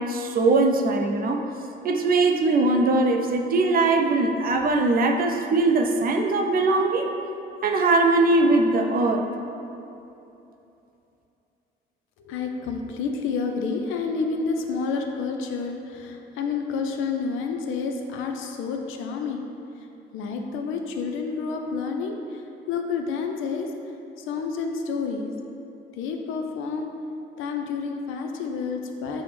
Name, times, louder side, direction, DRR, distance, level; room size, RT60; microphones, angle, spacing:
voice 1, 0.0-1.4 1.8-7.1 7.6-9.2, right 3 dB, 50° right, 3 dB, 0.4 m, -21 dB
voice 2, 12.2-19.5 20.1-23.7 24.2-25.3 25.9-26.9 27.4-29.2, left 5 dB, 90° left, 4 dB, 0.4 m, -29 dB
6.0 x 2.0 x 3.3 m, 2.8 s
cardioid pair, 90°, 20 cm